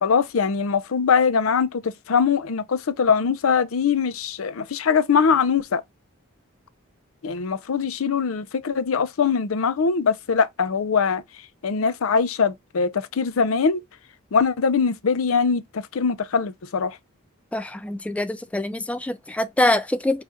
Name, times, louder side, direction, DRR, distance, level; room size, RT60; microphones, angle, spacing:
voice 1, 0.0-5.8 7.2-11.2 11.6-13.8 14.3-17.0, left 6 dB, 85° left, 0.5 m, -22 dB
voice 2, 17.5-20.2, left 1 dB, 5° left, 0.3 m, -24 dB
4.9 x 2.4 x 4.0 m
head